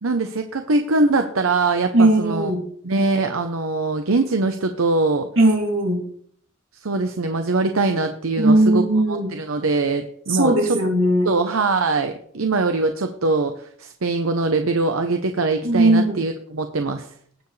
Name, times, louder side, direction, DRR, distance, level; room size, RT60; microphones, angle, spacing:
voice 1, 0.0-2.5 2.8-5.3 6.8-10.8 11.2-17.1, right 3 dB, 85° right, 6 dB, 0.8 m, -22 dB
voice 2, 1.9-2.6 5.4-6.0 8.4-9.4 10.3-11.3 15.6-16.2, right 1 dB, 70° right, 0 dB, 3.1 m, -18 dB
18.5 x 7.0 x 3.3 m, 0.62 s
head